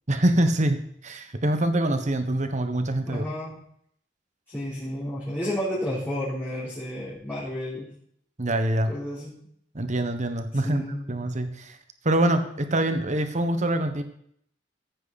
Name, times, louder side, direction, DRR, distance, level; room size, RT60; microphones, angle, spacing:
voice 1, 0.1-3.3 8.4-8.9 9.7-11.8 12.0-14.0, right 1 dB, 40° right, 9 dB, 1.3 m, -25 dB
voice 2, 3.1-3.6 4.5-7.9 8.9-9.4 10.6-11.1, equal, 10° left, -10 dB, 3.7 m, -31 dB
15.0 x 9.2 x 4.2 m, 0.68 s
head